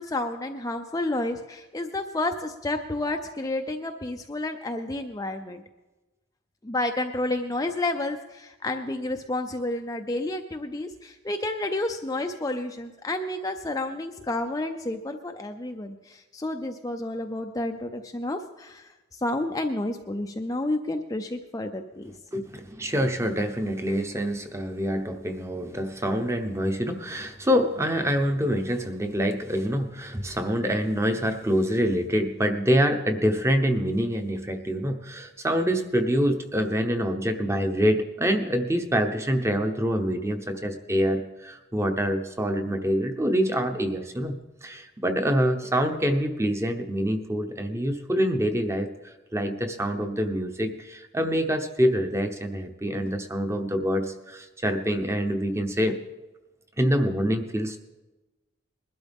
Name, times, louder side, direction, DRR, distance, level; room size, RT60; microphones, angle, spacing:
voice 1, 0.0-5.6 6.6-22.1, left 2 dB, 15° left, 5 dB, 0.5 m, -30 dB
voice 2, 22.3-56.0 56.8-57.8, equal, 15° right, 6 dB, 0.9 m, -26 dB
21.0 x 12.0 x 3.6 m, 1.1 s
head